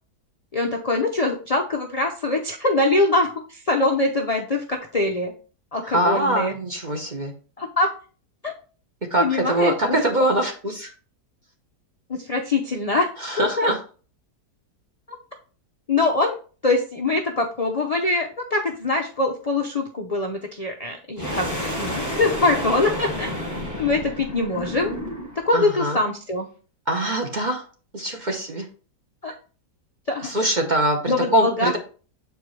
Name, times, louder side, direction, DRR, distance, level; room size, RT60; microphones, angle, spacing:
voice 1, 0.5-5.3 5.7-6.6 7.6-7.9 8.4-8.5 9.2-9.7 12.1-13.1 13.4-13.7 15.1-15.2 15.9-16.4 16.6-23.3 23.8-24.9 25.4-26.5 29.2-29.3 30.1-30.3 31.1-31.7, left 2 dB, 75° left, 1 dB, 0.3 m, -23 dB
voice 2, 5.8-7.3 9.1-10.9 13.2-13.8 25.5-26.0 26.9-27.6 27.9-28.7 30.2-31.8, right 1 dB, 35° right, 3 dB, 0.8 m, -23 dB
sound 1, 21.2-25.5, equal, 10° right, 1.4 m, -30 dB
7.4 x 4.7 x 3.1 m, 0.38 s
omnidirectional pair, 1.8 m